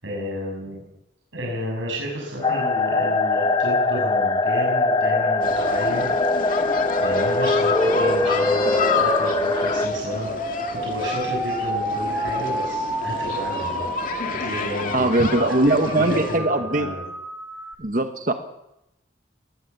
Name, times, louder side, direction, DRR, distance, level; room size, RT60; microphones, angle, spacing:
voice 1, 0.0-0.8 1.3-6.1 7.0-13.9 14.5-16.5 16.7-17.0, equal, 85° right, -2 dB, 6.8 m, -32 dB
sound 1, 2.4-9.9, left 3 dB, 20° left, 0.9 m, -22 dB
sound 2, 5.4-16.4, left 4 dB, 45° left, 2.3 m, -29 dB
sound 3, 7.8-17.8, equal, 10° right, 2.1 m, -28 dB
voice 2, 14.9-16.9 17.8-18.3, right 1 dB, 45° right, 7 dB, 1.2 m, -21 dB
20.0 x 19.5 x 6.9 m, 0.86 s
head